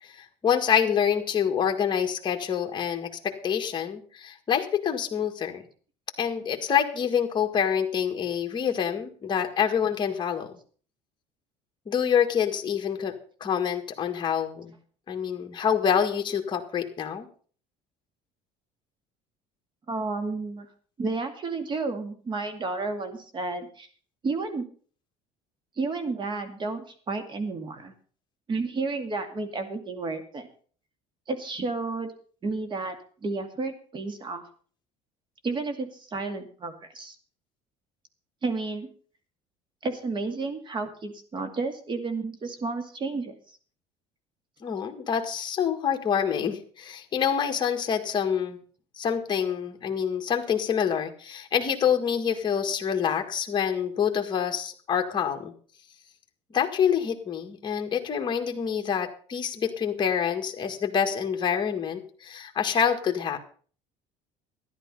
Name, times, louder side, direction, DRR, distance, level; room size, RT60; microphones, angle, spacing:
voice 1, 0.0-5.6 6.2-10.5 11.9-13.1 13.4-14.7 15.1-17.3 44.6-48.6 49.0-55.5 56.5-63.4, left 8 dB, 30° left, 3 dB, 1.9 m, -26 dB
voice 2, 19.9-20.7 21.0-23.9 24.2-24.7 25.8-27.9 28.5-30.5 31.3-32.1 32.4-33.0 33.2-34.4 35.4-37.2 38.4-38.9 39.8-43.3, right 3 dB, 35° right, 8 dB, 2.3 m, -31 dB
13.0 x 10.5 x 5.4 m, 0.44 s
cardioid pair, 120°, 15 cm